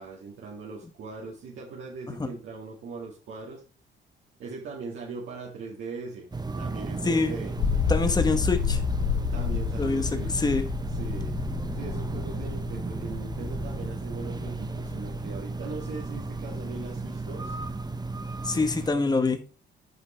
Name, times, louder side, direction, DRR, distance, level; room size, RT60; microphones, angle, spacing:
voice 1, 0.0-3.6 4.4-6.3 6.6-7.5 9.3-10.4 11.0-11.3 11.7-17.5, right 4 dB, 75° right, -4 dB, 2.3 m, -40 dB
sound 1, 6.3-18.9, right 3 dB, 20° right, 0.9 m, -34 dB
voice 2, 7.0-7.3 7.9-8.8 9.8-10.7 18.4-19.5, left 3 dB, 20° left, 7 dB, 1.2 m, -25 dB
sound 2, 7.6-17.7, left 6 dB, 75° left, 2.2 m, -31 dB
8.0 x 5.5 x 4.4 m, 0.36 s
cardioid pair, 90°, 20 cm